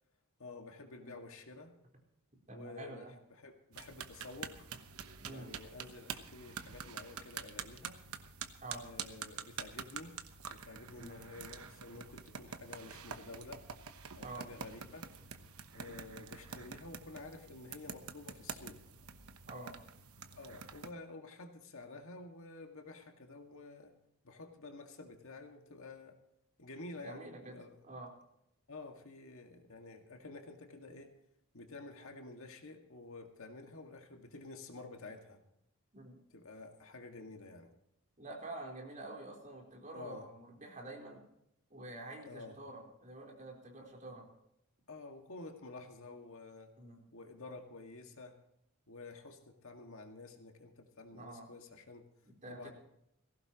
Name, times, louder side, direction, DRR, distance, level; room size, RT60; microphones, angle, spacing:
voice 1, 0.4-1.7 2.5-4.7 5.3-8.0 8.8-10.2 10.5-13.6 14.1-15.1 15.7-18.8 20.4-24.0 24.2-26.2 26.6-27.8 28.7-31.1 31.5-35.4 36.3-37.7 39.9-40.3 42.2-42.6 44.9-46.7 47.1-48.4 48.9-52.1 52.5-52.7, left 3 dB, 65° left, 3 dB, 2.0 m, -50 dB
voice 2, 2.5-3.1 5.2-5.5 8.6-8.8 11.0-11.2 14.2-14.4 15.9-16.0 19.5-19.7 27.0-27.6 27.8-28.1 35.9-36.1 38.2-41.2 41.7-44.3 46.8-47.0 51.1-51.5 52.4-52.7, right 2 dB, 35° right, 0 dB, 4.3 m, -47 dB
sound 1, 3.7-20.9, right 6 dB, 75° right, 1.1 m, -47 dB
19.0 x 16.5 x 3.0 m, 0.77 s
head